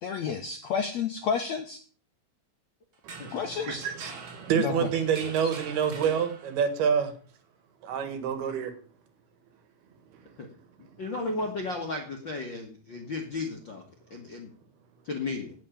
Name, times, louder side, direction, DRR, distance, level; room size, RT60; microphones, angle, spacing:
voice 1, 0.0-1.8 3.3-3.8 4.6-4.9 5.2-5.3, left 6 dB, 75° left, 6 dB, 1.6 m, -30 dB
sound 1, 2.9-6.8, right 4 dB, 55° right, 1.0 m, -45 dB
voice 2, 3.0-7.1 7.8-8.7, right 7 dB, 80° right, 9 dB, 3.6 m, -28 dB
voice 3, 11.0-13.8 14.1-14.5 15.0-15.5, left 3 dB, 55° left, 2 dB, 1.3 m, -34 dB
9.1 x 9.0 x 7.1 m, 0.42 s
omnidirectional pair, 4.4 m